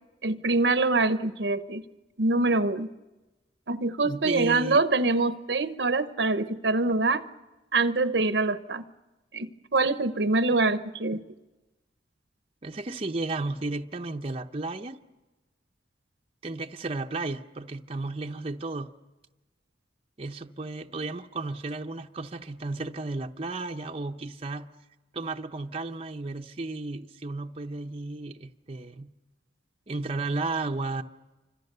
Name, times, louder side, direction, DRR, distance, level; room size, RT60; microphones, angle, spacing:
voice 1, 0.2-1.8 2.2-2.9 3.7-7.3 7.7-8.8 9.3-11.2, right 3 dB, 70° right, 0.9 m, -25 dB
voice 2, 4.0-4.8 12.6-15.0 16.4-18.9 20.2-24.7 25.1-29.1 29.9-31.0, right 3 dB, 35° right, 0.8 m, -33 dB
28.5 x 25.5 x 6.8 m
head